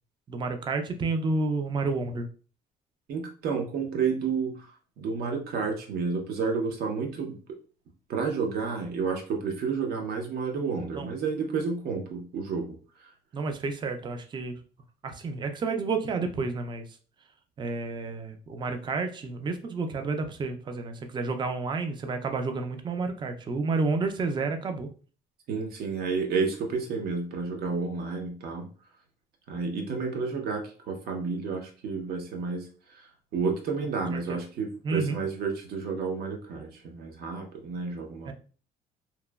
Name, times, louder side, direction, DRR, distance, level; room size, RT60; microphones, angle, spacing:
voice 1, 0.3-2.3 11.0-11.1 13.3-14.6 15.0-17.0 17.6-24.9 34.1-34.4 34.8-35.2 38.3-38.4, right 3 dB, 25° right, 6 dB, 0.4 m, -30 dB
voice 2, 3.1-4.7 5.0-7.4 8.1-13.1 25.5-28.7 29.5-33.1 33.3-38.3, right 5 dB, 65° right, 3 dB, 0.7 m, -31 dB
2.9 x 2.1 x 2.2 m, 0.39 s
cardioid pair, 110°, 17 cm